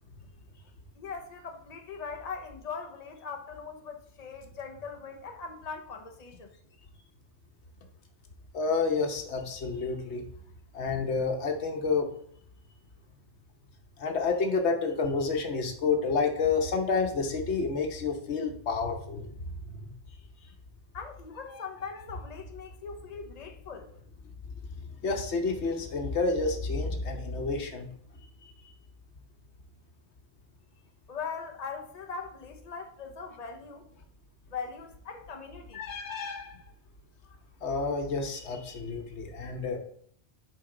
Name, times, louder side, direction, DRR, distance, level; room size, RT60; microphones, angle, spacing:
voice 1, 0.9-6.5 20.9-23.9 31.1-33.8 34.5-35.8, left 5 dB, 40° left, 4 dB, 1.0 m, -40 dB
voice 2, 8.5-10.2 10.7-12.1 14.0-19.3 19.6-19.8 25.0-27.9 28.4-28.5 35.7-36.6 37.6-39.8, left 4 dB, 90° left, 4 dB, 1.3 m, -29 dB
7.7 x 5.1 x 3.8 m, 0.63 s
omnidirectional pair, 1.1 m